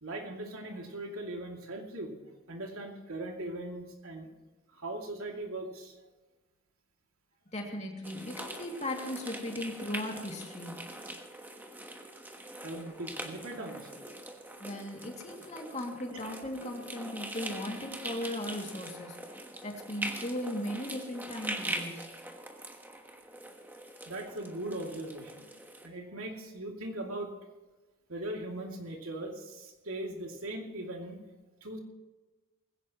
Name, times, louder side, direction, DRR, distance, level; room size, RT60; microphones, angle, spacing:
voice 1, 0.0-2.2 2.5-4.3 4.7-6.0 12.6-13.9 24.1-25.4 25.8-27.3 28.1-31.2 31.6-31.8, right 1 dB, 80° right, 1 dB, 2.6 m, -39 dB
voice 2, 7.5-10.8 14.6-22.1, left 1 dB, 30° left, 1 dB, 2.5 m, -38 dB
sound 1, 8.0-25.9, right 1 dB, 10° right, 1.3 m, -42 dB
19.5 x 16.5 x 3.1 m, 1.2 s
head